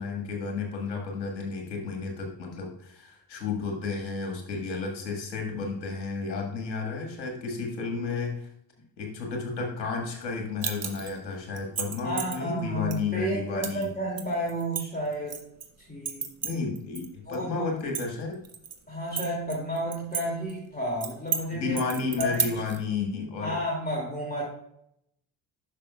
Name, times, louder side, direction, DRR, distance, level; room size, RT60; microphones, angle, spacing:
voice 1, 0.0-8.5 9.0-13.9 16.4-18.4 21.5-23.6, left 4 dB, 85° left, 1 dB, 1.8 m, -32 dB
sound 1, 10.6-11.2 11.6-12.4 12.9-13.0 13.6-13.9 14.2-15.7 16.1-17.1 17.3-17.4 17.8-18.8 19.2-20.2 20.5-20.6 21.0-21.4 21.8-22.8, right 6 dB, 30° right, 1.2 m, -32 dB
voice 2, 12.0-15.4 15.8-16.3 17.3-17.7 18.9-21.8 22.2-22.6 23.4-24.4, equal, 20° left, -3 dB, 2.6 m, -31 dB
10.5 x 6.3 x 2.3 m, 0.76 s
hypercardioid pair, 55°, 49 cm